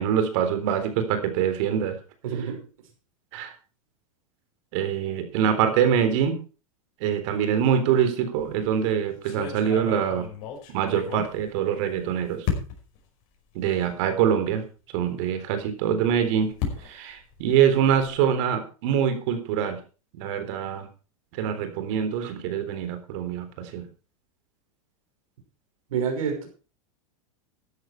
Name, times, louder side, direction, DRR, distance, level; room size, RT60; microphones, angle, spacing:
voice 1, 0.0-2.0 3.3-3.5 4.7-6.4 7.0-10.3 10.7-12.5 13.6-14.6 14.9-16.5 16.8-19.8 20.1-20.8 21.4-23.8, right 8 dB, 60° right, 9 dB, 3.8 m, -24 dB
voice 2, 2.2-2.7 25.9-26.5, right 7 dB, 80° right, 4 dB, 5.8 m, -28 dB
sound 1, 8.4-8.7 9.2-12.0 12.4-13.0 13.7-13.8 14.2-14.3 15.9-18.2, left 8 dB, 50° left, 5.4 m, -34 dB
14.5 x 10.5 x 4.6 m, 0.35 s
hypercardioid pair, 120°, 18 cm